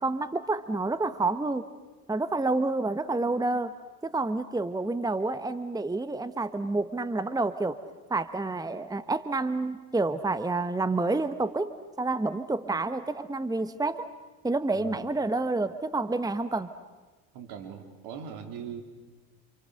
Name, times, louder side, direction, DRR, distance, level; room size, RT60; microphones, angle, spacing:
voice 1, 0.0-1.6 2.1-3.7 4.0-7.8 8.1-11.7 12.0-14.1 14.4-16.7, right 3 dB, 10° right, 12 dB, 1.3 m, -29 dB
voice 2, 14.7-15.1 17.3-18.8, right 7 dB, 65° right, 5 dB, 4.3 m, -41 dB
28.5 x 28.5 x 6.7 m, 1.3 s
hypercardioid pair, 70°, 43 cm